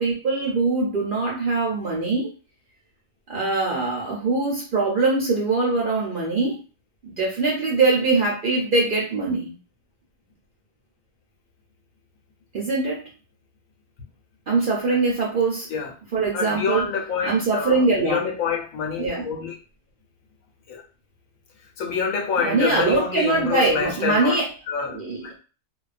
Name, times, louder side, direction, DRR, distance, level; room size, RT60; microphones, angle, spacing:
voice 1, 0.0-2.3 3.3-6.6 7.0-9.5 12.5-13.0 14.5-15.7 16.1-16.8 17.2-18.2 19.0-19.3 22.4-24.5 24.9-25.3, right 3 dB, 60° right, 0.5 m, -22 dB
voice 2, 16.3-19.5 20.7-20.8 21.8-24.4 24.7-25.0, left 6 dB, 80° left, 1.1 m, -26 dB
2.3 x 2.2 x 2.3 m
omnidirectional pair, 1.4 m